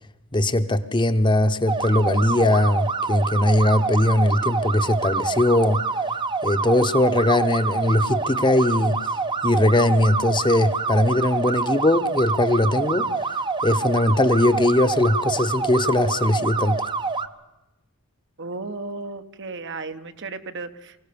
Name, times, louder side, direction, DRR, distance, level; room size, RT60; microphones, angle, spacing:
voice 1, 0.3-5.8 6.4-9.0 9.4-13.1 13.6-16.8, left 1 dB, 20° left, 9 dB, 1.0 m, -20 dB
sound 1, 1.7-17.3, right 4 dB, 20° right, 0.8 m, -26 dB
voice 2, 18.4-21.0, right 3 dB, 60° right, 9 dB, 1.3 m, -34 dB
24.0 x 16.5 x 6.9 m, 0.96 s
head